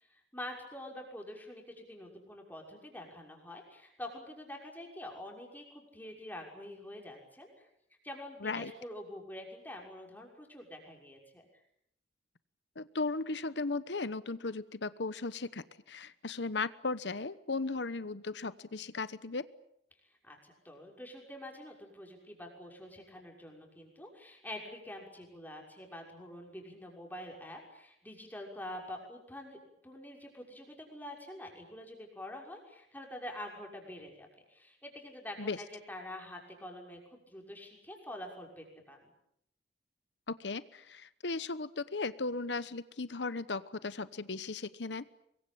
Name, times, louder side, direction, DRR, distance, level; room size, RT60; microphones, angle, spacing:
voice 1, 0.3-7.7 8.0-11.4 20.2-39.1, left 1 dB, 10° left, 1 dB, 6.2 m, -46 dB
voice 2, 8.4-8.7 12.8-19.5 35.4-35.6 40.3-45.1, left 3 dB, 75° left, 15 dB, 1.1 m, -36 dB
25.0 x 22.5 x 8.8 m, 0.75 s
head